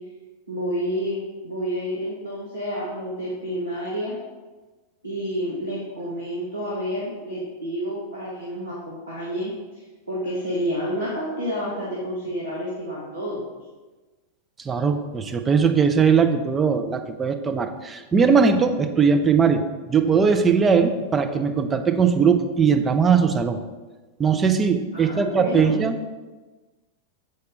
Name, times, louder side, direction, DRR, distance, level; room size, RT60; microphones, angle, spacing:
voice 1, 0.5-4.2 5.0-9.5 10.1-13.4 24.9-25.7, equal, 80° right, -6 dB, 1.3 m, -29 dB
voice 2, 14.6-23.6 24.2-26.1, right 6 dB, 20° right, 6 dB, 0.6 m, -20 dB
6.7 x 5.2 x 4.0 m, 1.2 s
figure-of-eight pair, 90°, 0 cm